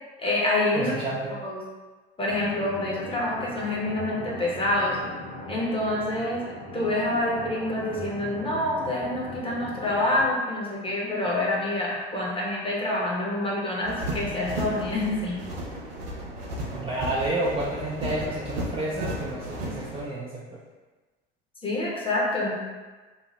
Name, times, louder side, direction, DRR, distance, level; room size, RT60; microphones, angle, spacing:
voice 1, 0.2-0.9 1.3-1.6 2.2-5.0 5.5-6.5 6.7-15.4 21.6-22.6, left 1 dB, 20° left, -4 dB, 0.9 m, -27 dB
voice 2, 0.7-1.4 16.7-20.6, right 2 dB, 20° right, -6 dB, 0.5 m, -30 dB
sound 1, 2.2-10.2, left 1 dB, 65° left, 1.2 m, -39 dB
sound 2, 13.8-20.0, right 1 dB, 75° right, 0.7 m, -34 dB
3.1 x 2.0 x 3.0 m, 1.3 s
figure-of-eight pair, 60°, 31 cm